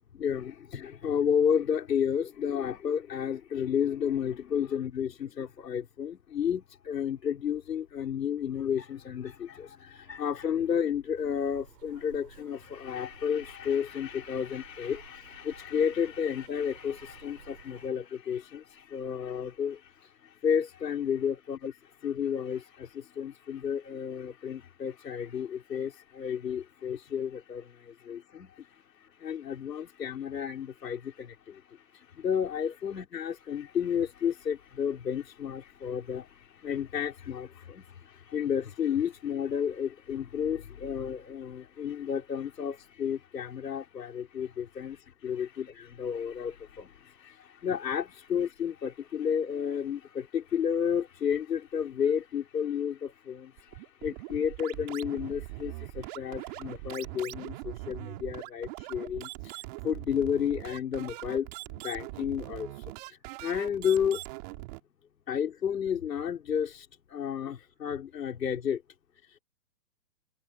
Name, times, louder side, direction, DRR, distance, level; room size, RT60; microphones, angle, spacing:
voice 1, 0.1-19.8 20.4-21.7 22.0-28.5 29.2-31.6 32.2-53.5 54.0-59.5 59.8-61.5 61.8-62.7 63.4-64.2 65.3-68.8, left 8 dB, 80° left, 3.8 m, -32 dB
sound 1, 11.1-17.9, right 7 dB, 85° right, 7.4 m, -55 dB
sound 2, 53.6-64.8, right 24 dB, 25° right, 2.4 m, -42 dB
hypercardioid pair, 165°, 48 cm